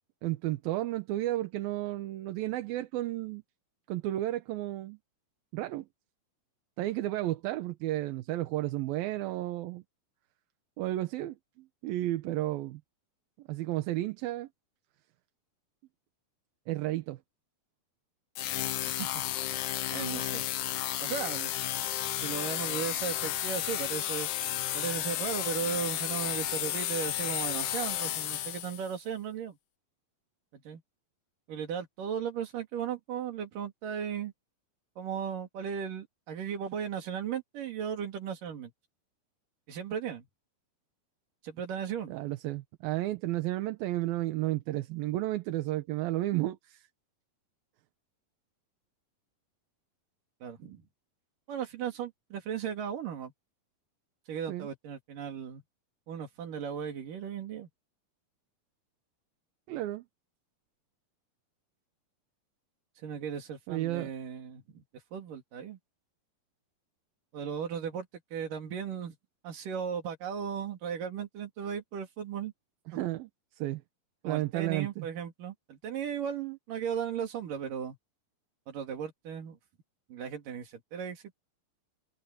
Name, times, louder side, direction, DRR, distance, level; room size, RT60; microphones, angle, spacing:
voice 1, 0.2-3.4 3.9-5.0 5.5-5.9 6.8-9.8 10.8-12.8 13.5-14.5 16.7-17.2 42.1-46.9 54.5-54.7 59.7-60.0 63.7-64.1 72.9-73.3 73.6-73.8 74.2-75.1, right 15 dB, 80° right, 2.7 m, -32 dB
sound 1, 18.3-28.9, left 13 dB, 65° left, 2.3 m, -33 dB
voice 2, 19.9-20.4 21.0-21.5 22.1-24.3 24.7-29.6 30.5-30.8 31.5-34.3 35.0-38.7 39.7-40.3 41.4-42.1 50.4-50.8 51.5-53.3 54.3-55.6 56.1-57.7 63.0-64.8 65.1-65.8 67.3-68.1 68.3-69.2 69.4-72.5 72.9-73.0 74.2-78.0 78.7-79.6 80.1-81.2, right 8 dB, 65° right, 4.1 m, -36 dB
omnidirectional pair, 4.3 m